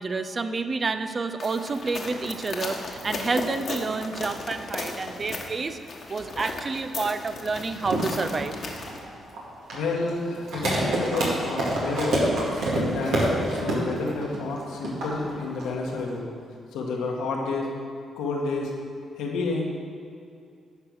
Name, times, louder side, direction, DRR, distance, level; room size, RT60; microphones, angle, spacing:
voice 1, 0.0-5.8 6.1-8.5, right 4 dB, 40° right, 10 dB, 0.6 m, -29 dB
sound 1, 1.4-9.0, left 3 dB, 60° left, 1.3 m, -36 dB
sound 2, 7.8-16.2, right 1 dB, 80° right, 2.3 m, -27 dB
voice 2, 9.7-12.2 12.7-16.3 16.7-17.7 18.2-18.7 19.2-19.6, left 3 dB, 85° left, -1 dB, 1.4 m, -30 dB
11.0 x 4.7 x 6.2 m, 2.4 s
supercardioid pair, 55°, 0 cm